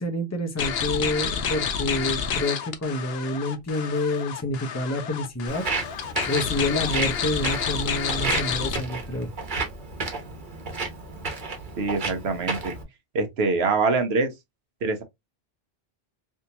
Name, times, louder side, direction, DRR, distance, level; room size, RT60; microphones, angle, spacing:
voice 1, 0.0-5.7 6.3-9.3, left 1 dB, 20° left, 0.7 m, -28 dB
sound 1, 0.6-8.8, left 7 dB, 80° left, 0.9 m, -29 dB
Walk footsteps, 5.5-12.8, right 4 dB, 55° right, 1.1 m, -32 dB
voice 2, 11.8-12.7 13.1-14.3 14.8-15.0, right 3 dB, 85° right, 1.0 m, -24 dB
3.6 x 2.6 x 2.8 m
omnidirectional pair, 1.0 m